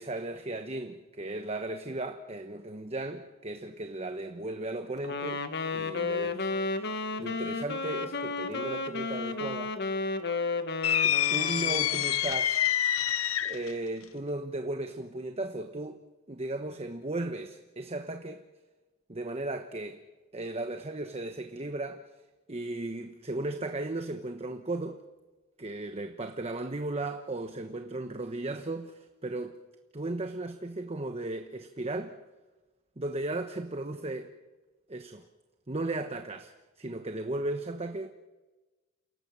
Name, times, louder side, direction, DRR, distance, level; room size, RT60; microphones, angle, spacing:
voice 1, 0.0-6.9 7.2-9.7 11.0-12.7 13.4-18.4 19.1-20.0 20.3-22.0 22.5-25.0 25.6-29.6 29.9-32.2 33.0-34.3 34.9-35.3 35.7-38.1, right 2 dB, 30° right, 1.1 m, -36 dB
Wind instrument woodwind instrument, 5.0-12.3, left 3 dB, 55° left, 1.5 m, -33 dB
sound 1, 10.8-13.7, left 11 dB, 90° left, 0.7 m, -27 dB
28.5 x 18.0 x 7.5 m
head